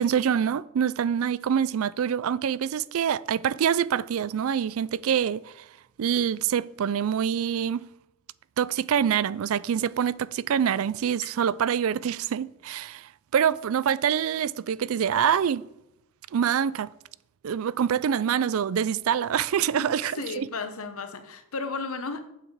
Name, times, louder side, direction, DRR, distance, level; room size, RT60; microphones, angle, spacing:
voice 1, 0.0-5.5 6.0-7.9 8.6-15.6 16.3-16.9 17.4-20.5, right 8 dB, 65° right, 0.4 m, -25 dB
voice 2, 20.2-22.3, left 4 dB, 70° left, 1.1 m, -34 dB
8.5 x 7.7 x 4.9 m
head